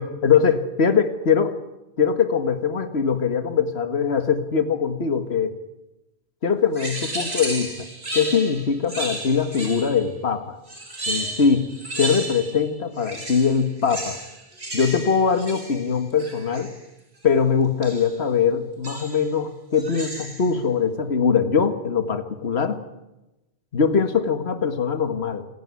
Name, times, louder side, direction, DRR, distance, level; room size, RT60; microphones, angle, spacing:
voice 1, 0.0-1.6 2.0-5.5 6.4-7.9 8.1-10.6 11.1-14.2 14.7-16.7 17.2-22.8 23.7-25.4, left 6 dB, 70° left, 8 dB, 2.0 m, -22 dB
sound 1, 6.7-10.1 10.7-12.7 13.0-16.8 17.8-18.2 18.8-19.3 19.7-20.5, right 1 dB, 65° right, 4.9 m, -33 dB
28.0 x 16.0 x 9.7 m, 0.97 s
omnidirectional pair, 1.1 m